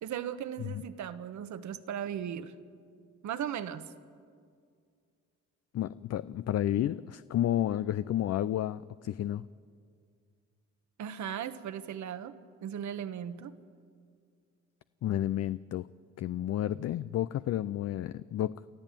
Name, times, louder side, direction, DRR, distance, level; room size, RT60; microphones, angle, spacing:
voice 1, 0.0-2.5 3.2-3.9 11.0-12.3 12.6-13.6, right 9 dB, 70° right, 11 dB, 1.3 m, -37 dB
voice 2, 5.7-9.4 15.0-15.8 16.2-18.6, left 12 dB, 55° left, 15 dB, 0.5 m, -31 dB
29.0 x 13.5 x 9.0 m, 2.2 s
cardioid pair, 90°, 30 cm